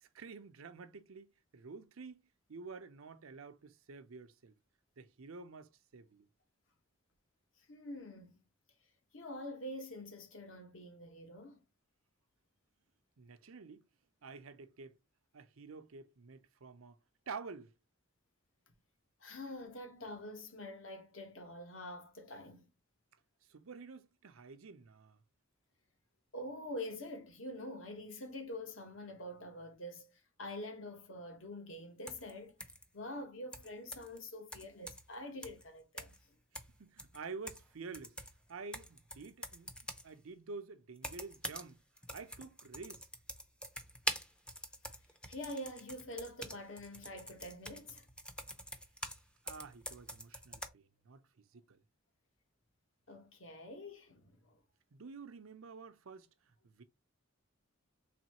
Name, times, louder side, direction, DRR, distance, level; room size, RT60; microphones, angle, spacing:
voice 1, 0.0-4.5 5.0-6.3 13.2-13.9 14.2-15.0 15.3-17.0 17.3-17.7 23.5-25.2 36.5-38.2 38.5-39.7 40.0-41.8 42.1-43.1 49.4-51.8 54.9-56.8, right 4 dB, 80° right, 0.6 m, -49 dB
voice 2, 7.7-8.4 9.1-11.6 19.2-22.7 26.3-32.6 32.9-36.4 45.3-48.1 53.1-54.6, left 1 dB, 65° left, 1.2 m, -46 dB
sound 1, 32.1-32.3 32.6-32.8 33.5-34.2 34.5-35.1 35.4-35.6 36.0-36.2 36.5-37.7 37.9-40.1 41.0-41.7 42.0-49.2 49.5-50.7, equal, 5° left, 0.5 m, -45 dB
4.2 x 3.1 x 2.9 m
head